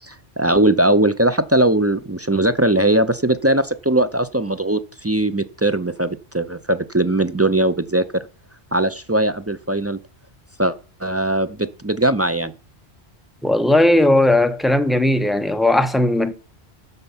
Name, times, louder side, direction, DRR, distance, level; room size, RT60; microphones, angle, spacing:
voice 1, 0.0-8.2 8.7-10.0 10.6-12.5, right 1 dB, 25° right, 0.3 m, -20 dB
voice 2, 13.4-16.3, left 1 dB, ahead, 0.7 m, -17 dB
11.5 x 5.6 x 7.2 m
omnidirectional pair, 1.1 m